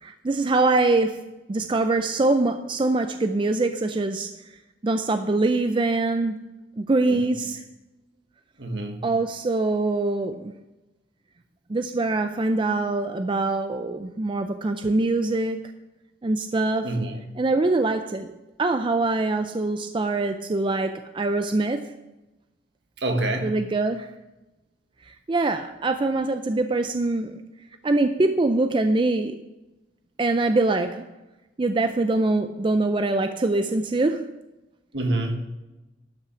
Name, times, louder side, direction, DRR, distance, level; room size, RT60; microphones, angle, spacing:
voice 1, 0.0-4.3 4.8-6.4 6.8-7.6 9.0-10.5 11.7-15.7 16.2-16.9 17.4-18.3 18.6-21.9 23.4-24.1 25.1-27.4 27.8-29.4 30.2-31.0 31.6-34.4, right 2 dB, 25° right, 0.4 m, -24 dB
voice 2, 8.6-9.0 16.8-17.2 23.0-23.6 34.9-35.3, right 2 dB, 70° right, 1.6 m, -27 dB
12.0 x 5.9 x 5.7 m
head